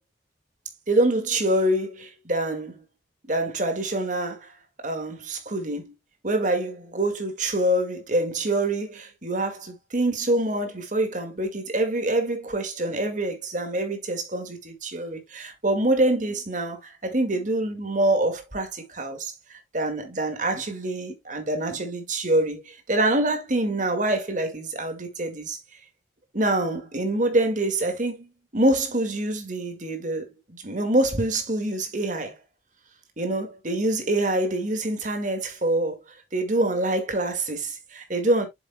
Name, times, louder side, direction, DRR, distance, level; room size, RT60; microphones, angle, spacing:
voice 1, 0.9-2.8 3.3-4.5 4.8-5.9 6.2-25.6 26.3-32.4 33.2-36.0 36.3-38.5, right 1 dB, 40° right, 1.9 m, -26 dB
7.9 x 7.0 x 2.2 m
head